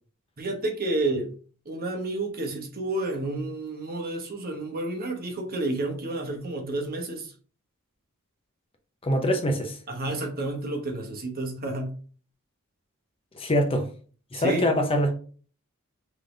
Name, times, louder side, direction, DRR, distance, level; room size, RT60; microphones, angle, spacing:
voice 1, 0.4-1.3 1.7-7.3 9.9-11.9 14.3-14.7, right 2 dB, 45° right, 1.0 m, -30 dB
voice 2, 9.0-9.8 13.3-13.9 14.3-15.2, equal, 25° left, 0.7 m, -24 dB
3.7 x 3.5 x 3.8 m
head